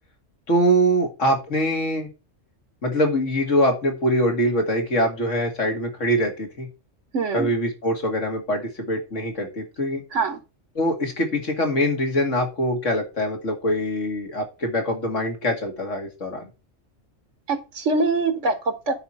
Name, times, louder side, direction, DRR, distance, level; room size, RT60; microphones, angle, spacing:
voice 1, 0.5-2.1 2.8-6.7 7.3-10.0 10.7-16.5, equal, 80° left, 3 dB, 2.5 m, -23 dB
voice 2, 7.1-7.5 10.1-10.4 17.5-18.9, right 3 dB, 75° right, 8 dB, 1.7 m, -23 dB
9.6 x 4.4 x 5.5 m, 0.29 s
omnidirectional pair, 1.3 m